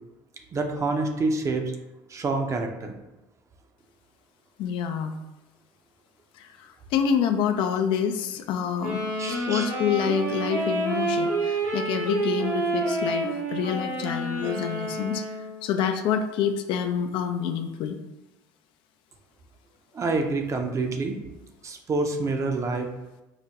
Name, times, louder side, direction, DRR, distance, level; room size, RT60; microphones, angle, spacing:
voice 1, 0.5-1.7 2.1-3.0 9.2-9.7 19.9-21.2 21.6-22.9, right 3 dB, 35° right, 4 dB, 0.6 m, -27 dB
voice 2, 4.6-5.2 6.3-15.3 15.6-18.0, left 8 dB, 70° left, 7 dB, 0.4 m, -27 dB
Wind instrument woodwind instrument, 8.8-15.6, right 2 dB, 85° right, 1.0 m, -28 dB
4.8 x 2.1 x 2.8 m, 0.98 s
supercardioid pair, 85°, 9 cm